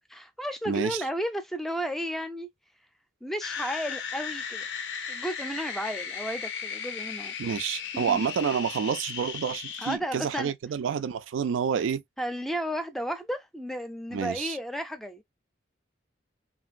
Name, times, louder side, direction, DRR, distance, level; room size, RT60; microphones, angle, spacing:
voice 1, 0.1-2.5 3.2-4.7 5.1-7.3 7.9-8.3 9.8-10.5 12.2-15.2, equal, ahead, 0.3 m, -33 dB
voice 2, 0.7-1.0 7.4-12.0 14.1-14.6, right 7 dB, 85° right, 0.3 m, -29 dB
sound 1, 3.4-10.0, left 6 dB, 65° left, 0.4 m, -36 dB
2.9 x 2.5 x 2.4 m
head